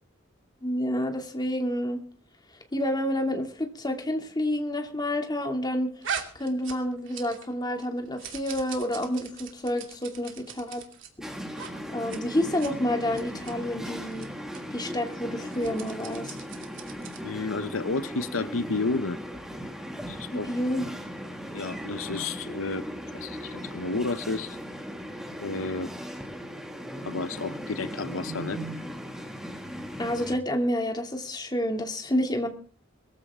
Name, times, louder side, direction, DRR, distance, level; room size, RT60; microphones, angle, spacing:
voice 1, 0.6-2.0 2.7-5.9 6.3-10.8 11.2-11.3 11.9-14.3 14.7-16.4 20.3-20.9 30.0-32.5, left 1 dB, 20° left, 3 dB, 2.7 m, -29 dB
sound 1, 6.0-7.5 7.8-11.1 11.5-11.7 12.0-12.2 12.5-12.7 13.1-13.5 14.1-14.3 14.5-14.6 15.4-17.3, right 7 dB, 65° right, 2.7 m, -40 dB
sound 2, 11.2-30.4, equal, ahead, 2.4 m, -38 dB
voice 2, 17.2-19.2 20.1-20.5 21.5-22.8 23.1-24.6 25.4-25.9 27.0-28.6, left 3 dB, 80° left, 11 dB, 1.0 m, -31 dB
22.0 x 14.5 x 3.7 m, 0.42 s
head